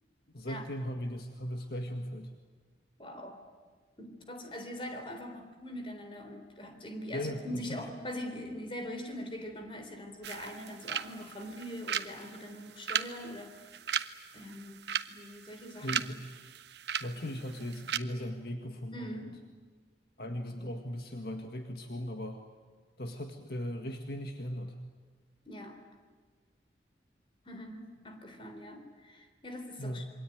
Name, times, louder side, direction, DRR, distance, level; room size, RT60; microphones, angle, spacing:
voice 1, 0.3-2.3 7.1-7.8 15.8-16.2 17.0-19.2 20.2-22.4 23.0-24.8 29.8-30.1, equal, 55° left, 4 dB, 1.8 m, -38 dB
voice 2, 3.0-3.4 4.0-13.6 14.3-16.1 18.9-19.5 25.5-25.8 27.5-30.1, left 1 dB, 30° left, 5 dB, 3.7 m, -42 dB
sound 1, 10.2-18.0, right 8 dB, 70° right, 1.0 m, -38 dB
27.5 x 23.0 x 9.4 m, 1.5 s
head